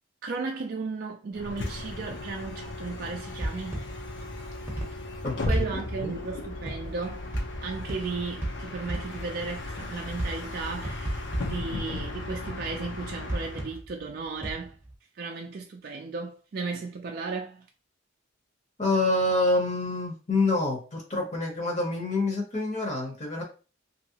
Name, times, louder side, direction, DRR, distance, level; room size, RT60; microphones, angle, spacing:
voice 1, 0.2-3.9 5.4-7.3 7.6-14.8 15.2-17.7, right 4 dB, 50° right, 0.3 m, -35 dB
Bus, 1.3-13.8, left 2 dB, 65° left, 0.6 m, -36 dB
sound 1, 3.4-6.2 6.7-9.6 10.2-12.5 13.1-14.9, right 1 dB, 10° right, 0.7 m, -35 dB
voice 2, 18.8-23.4, left 2 dB, 35° left, 0.8 m, -27 dB
2.8 x 2.7 x 2.7 m
head